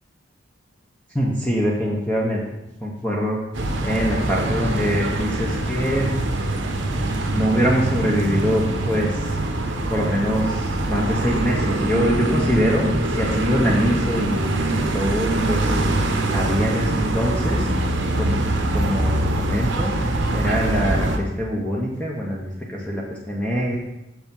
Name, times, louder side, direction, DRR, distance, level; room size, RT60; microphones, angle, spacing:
voice 1, 1.1-2.4 2.8-3.4 3.8-6.2 7.3-9.4 9.9-14.4 14.7-17.7 18.2-18.4 18.7-23.8, equal, 5° left, -4 dB, 0.8 m, -24 dB
sound 1, 3.5-21.2, right 1 dB, 60° right, 0.9 m, -23 dB
6.9 x 5.0 x 5.3 m, 0.92 s
head